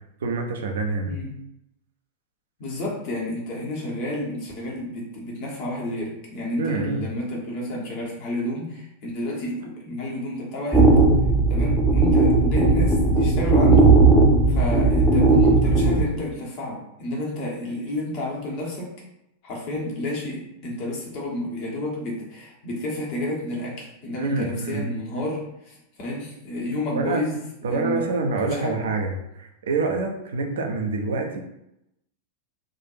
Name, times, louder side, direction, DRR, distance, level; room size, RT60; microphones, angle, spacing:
voice 1, 0.2-1.1 6.6-7.1 24.1-24.9 26.9-27.2 27.6-31.4, right 3 dB, 60° right, 3 dB, 0.7 m, -26 dB
voice 2, 2.6-10.9 11.5-14.0 14.5-19.0 19.4-28.1 28.4-28.8, left 1 dB, 40° left, -3 dB, 1.5 m, -31 dB
sound 1, 10.7-16.0, right 3 dB, ahead, 0.8 m, -17 dB
3.8 x 2.7 x 4.2 m, 0.84 s
figure-of-eight pair, 90°, 0 cm